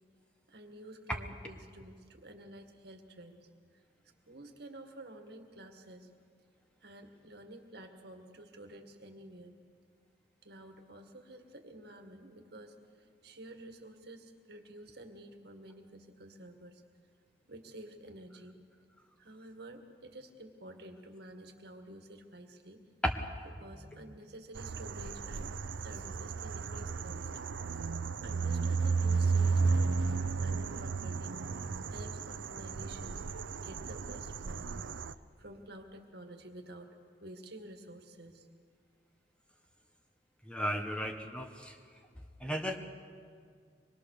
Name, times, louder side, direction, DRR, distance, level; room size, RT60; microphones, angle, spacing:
voice 1, 0.5-3.5 4.3-6.1 6.8-9.6 10.4-16.8 17.5-18.6 19.2-22.8 23.6-25.5 25.8-27.3 28.2-30.0 30.4-31.4 31.9-33.2 33.6-35.0 35.4-38.5, right 1 dB, 60° right, 5 dB, 1.9 m, -50 dB
sound 1, 24.6-35.1, right 4 dB, 85° right, 0.6 m, -33 dB
voice 2, 40.5-41.8 42.4-42.8, equal, 5° left, 4 dB, 1.2 m, -34 dB
24.5 x 21.0 x 6.6 m, 2.1 s
head